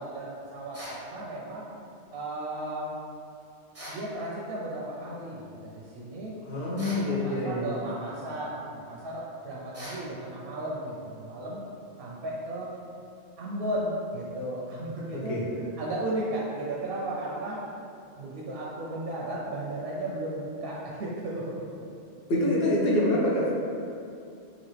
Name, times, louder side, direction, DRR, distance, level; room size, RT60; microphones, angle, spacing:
voice 1, 0.0-1.7 2.1-2.9 3.9-6.4 6.9-11.6 12.0-12.7 13.4-15.4 15.8-17.6 18.2-21.6, right 1 dB, 65° right, -5 dB, 0.7 m, -35 dB
sound 1, 0.7-1.1 3.7-4.1 6.8-7.1 9.7-10.1, equal, 15° right, 0.5 m, -41 dB
voice 2, 6.4-7.7 15.1-15.4 22.3-23.5, left 1 dB, 60° left, -6 dB, 1.0 m, -26 dB
4.0 x 2.4 x 3.2 m, 2.6 s
omnidirectional pair, 1.2 m